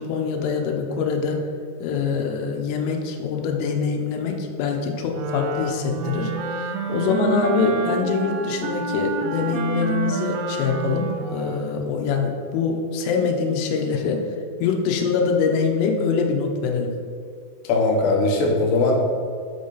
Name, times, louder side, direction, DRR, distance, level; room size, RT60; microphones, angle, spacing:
voice 1, 0.0-1.4 1.8-14.2 14.6-16.9, left 5 dB, 90° left, 2 dB, 3.2 m, -24 dB
Wind instrument woodwind instrument, 5.1-11.8, right 4 dB, 85° right, 2.8 m, -28 dB
voice 2, 17.6-19.0, left 2 dB, 75° left, 0 dB, 2.7 m, -20 dB
8.4 x 3.9 x 5.4 m, 2.2 s
omnidirectional pair, 5.6 m